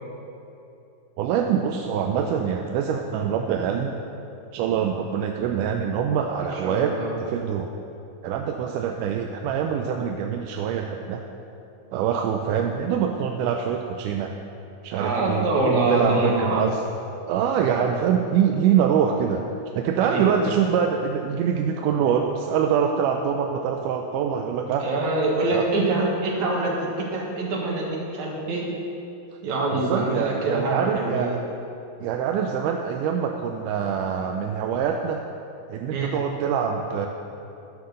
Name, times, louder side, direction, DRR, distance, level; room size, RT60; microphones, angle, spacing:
voice 1, 1.2-3.9 4.5-6.9 7.2-7.7 8.2-11.2 11.9-14.3 14.8-15.5 15.9-16.8 17.3-19.4 19.7-24.9 25.5-25.6 29.7-31.5 32.0-35.2 35.7-37.1, right 8 dB, 80° right, 3 dB, 1.9 m, -24 dB
voice 2, 6.6-7.2 14.9-16.6 20.0-20.5 24.8-28.7 29.4-31.4 35.9-36.1, right 2 dB, 60° right, -3 dB, 2.8 m, -25 dB
11.5 x 5.9 x 6.5 m, 2.8 s
omnidirectional pair, 3.9 m